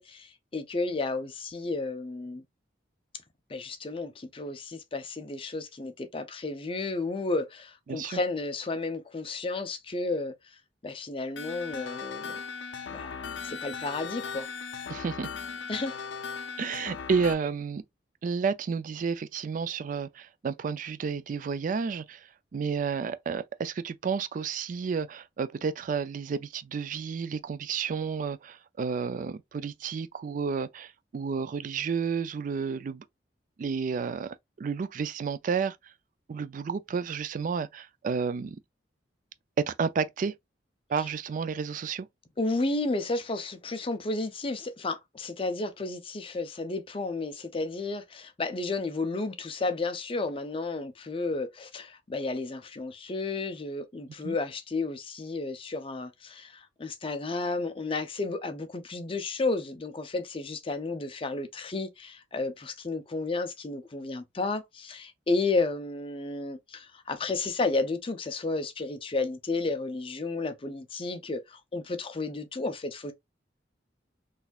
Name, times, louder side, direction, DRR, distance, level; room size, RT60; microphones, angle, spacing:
voice 1, 0.0-2.4 3.5-10.3 10.8-12.4 12.9-14.5 15.7-16.0 16.4-16.5 42.4-73.1, left 3 dB, 30° left, 0.5 m, -32 dB
voice 2, 7.9-8.2 14.9-15.3 16.6-17.8 18.2-33.0 33.6-35.9 36.3-38.6 39.7-40.3 40.9-42.1 54.2-54.4, right 5 dB, 45° right, 0.3 m, -31 dB
sound 1, 11.4-17.3, left 6 dB, 80° left, 0.4 m, -38 dB
3.9 x 2.6 x 2.3 m
head